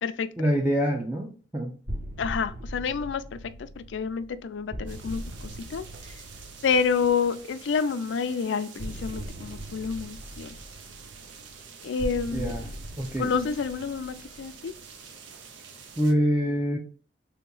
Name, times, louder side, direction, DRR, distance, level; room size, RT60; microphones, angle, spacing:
voice 1, 0.4-1.3 1.5-1.8 12.3-12.7 13.0-13.3 16.0-16.8, equal, 10° right, 0.5 m, -25 dB
sound 1, 1.9-7.6 8.8-15.1, equal, 60° right, 1.5 m, -40 dB
voice 2, 2.2-5.8 6.6-10.5 11.8-12.7 13.2-14.7, left 5 dB, 80° left, 0.4 m, -29 dB
sound 2, 4.9-16.1, right 5 dB, 85° right, 0.6 m, -47 dB
3.5 x 2.9 x 3.7 m
head